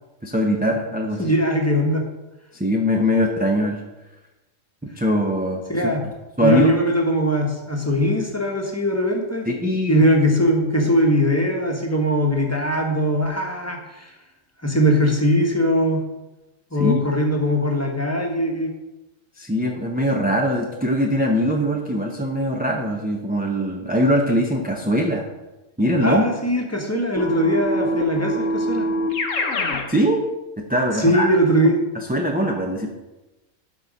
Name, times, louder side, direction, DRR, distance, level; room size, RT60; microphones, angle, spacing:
voice 1, 0.2-1.2 2.5-3.8 4.8-5.9 6.4-6.7 9.5-10.0 16.8-17.0 19.4-25.2 25.8-26.2 29.9-30.3 30.7-31.3 31.9-32.9, equal, 10° right, 0 dB, 0.6 m, -21 dB
voice 2, 1.2-2.1 5.7-6.0 6.4-9.4 9.9-14.1 14.6-16.0 16.7-18.7 26.0-28.9 31.0-31.8, equal, 10° left, 1 dB, 1.2 m, -20 dB
Keyboard (musical), 27.2-29.9, equal, 65° left, 1.4 m, -24 dB
12.5 x 4.3 x 5.2 m, 1.0 s
omnidirectional pair, 1.4 m